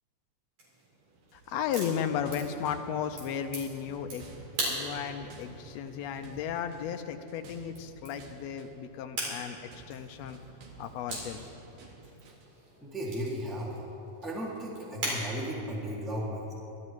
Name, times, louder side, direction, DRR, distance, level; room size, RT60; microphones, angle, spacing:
sound 1, 0.6-15.2, right 1 dB, 60° right, 5.1 m, -42 dB
sound 2, 1.2-12.6, right 3 dB, 90° right, 3.1 m, -51 dB
voice 1, 1.3-4.3 4.7-9.6 9.9-10.4 10.8-11.4, left 8 dB, 85° left, 6 dB, 1.5 m, -34 dB
voice 2, 12.8-13.8 14.2-16.5, equal, ahead, -5 dB, 1.6 m, -35 dB
24.5 x 13.0 x 3.2 m, 3.0 s
omnidirectional pair, 3.7 m